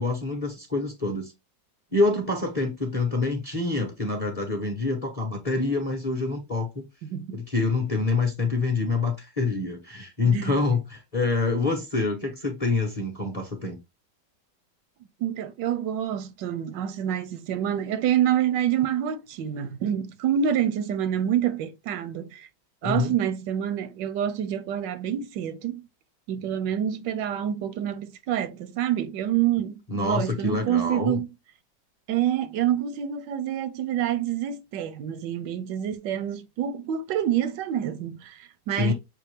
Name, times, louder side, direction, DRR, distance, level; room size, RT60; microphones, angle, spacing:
voice 1, 0.0-1.3 1.9-6.9 7.3-13.8 22.8-23.1 29.9-31.2 38.8-38.9, left 3 dB, 30° left, 0.7 m, -26 dB
voice 2, 7.1-7.4 10.2-10.6 15.2-22.5 22.8-25.8 26.3-31.3 32.1-38.9, right 10 dB, 85° right, 1.3 m, -27 dB
6.6 x 2.5 x 3.1 m
omnidirectional pair, 1.9 m